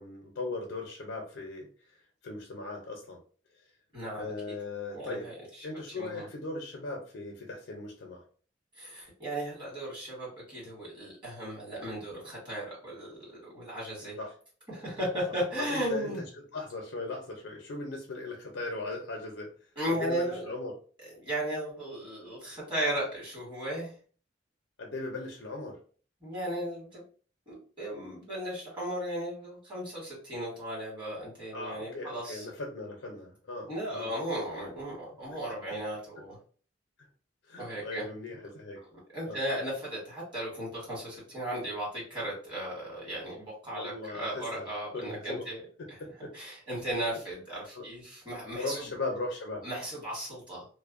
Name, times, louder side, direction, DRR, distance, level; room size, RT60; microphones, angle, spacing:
voice 1, 0.0-1.7 2.2-3.2 4.2-5.3 5.6-8.2 14.2-14.3 15.6-16.1 16.5-19.5 19.9-20.7 24.8-25.8 31.5-34.1 37.5-38.8 39.2-39.4 43.7-44.7 44.9-45.5 45.8-46.3 47.7-47.9 48.5-49.6, left 3 dB, 75° left, 0 dB, 0.5 m, -38 dB
voice 2, 3.9-4.5 4.9-5.7 5.9-6.3 8.7-14.2 14.7-16.2 19.7-20.4 21.2-23.9 26.2-27.0 27.5-32.4 33.7-36.4 37.6-38.0 39.1-45.6 45.9-46.0 46.3-48.9 49.6-50.6, right 1 dB, 25° right, -6 dB, 1.5 m, -36 dB
2.6 x 2.0 x 2.4 m, 0.41 s
head